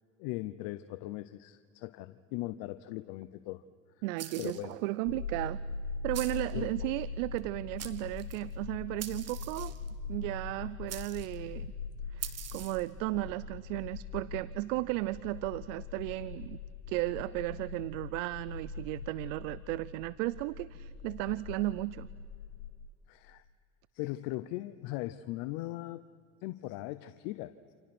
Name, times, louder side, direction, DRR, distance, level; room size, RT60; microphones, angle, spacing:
voice 1, 0.2-3.6 4.4-4.7 6.5-6.7 23.1-23.4 23.9-26.0 26.4-27.5, left 17 dB, 60° left, 13 dB, 0.9 m, -39 dB
voice 2, 4.0-5.6 6.0-9.7 10.1-11.7 12.1-16.6 16.9-22.1, right 20 dB, 65° right, 19 dB, 0.7 m, -35 dB
sound 1, 4.2-4.7 6.1-6.5 7.4-7.5 7.8-8.4 9.0-9.9 10.9-11.4 12.2-12.9, right 10 dB, 40° right, 1.9 m, -43 dB
sound 2, 5.1-22.7, left 4 dB, 80° left, 2.8 m, -42 dB
29.0 x 28.0 x 6.1 m, 2.3 s
hypercardioid pair, 85°, 40 cm